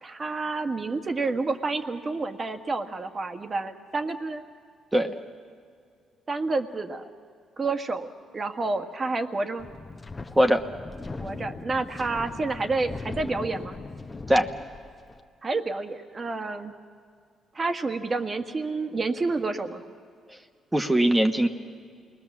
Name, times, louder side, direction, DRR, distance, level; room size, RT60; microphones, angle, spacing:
voice 1, 0.0-4.4 6.3-7.0 7.6-9.7 11.2-13.7 15.4-16.7 17.5-19.8, right 3 dB, 35° right, 7 dB, 1.6 m, -29 dB
Wind, 9.6-15.2, left 3 dB, 25° left, 1.0 m, -39 dB
voice 2, 20.7-21.5, right 1 dB, 10° right, 6 dB, 1.2 m, -20 dB
28.0 x 20.5 x 7.3 m, 2.2 s
cardioid pair, 90°, 0 cm